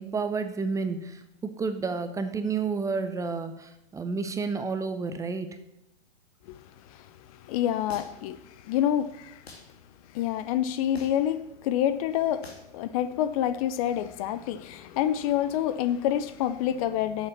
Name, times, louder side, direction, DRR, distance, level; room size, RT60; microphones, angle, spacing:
voice 1, 0.0-5.5, right 4 dB, 10° right, 0.7 m, -30 dB
voice 2, 6.8-9.5 10.1-12.5 12.7-17.3, left 11 dB, 35° left, 0.6 m, -28 dB
sound 1, 7.9-8.3 9.5-9.7 10.9-11.3 12.4-12.7, left 3 dB, 80° left, 2.4 m, -45 dB
9.5 x 7.3 x 7.2 m
figure-of-eight pair, 115°, 30 cm